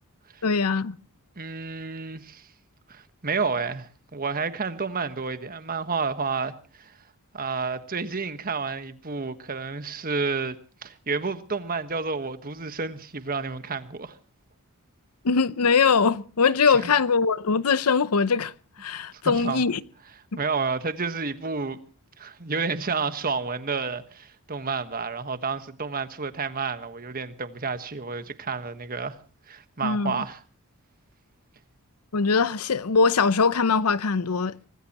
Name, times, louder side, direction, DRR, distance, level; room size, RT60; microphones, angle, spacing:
voice 1, 0.4-1.0 15.2-18.5 18.8-19.8 20.3-20.4 29.8-30.2 32.1-34.6, left 5 dB, 85° left, 0.7 m, -22 dB
voice 2, 1.4-2.5 2.9-6.9 7.3-10.6 10.8-14.2 16.7-16.9 19.1-19.6 20.4-21.8 22.2-29.2 29.5-30.4, right 4 dB, 40° right, 1.4 m, -30 dB
24.5 x 19.0 x 3.0 m
head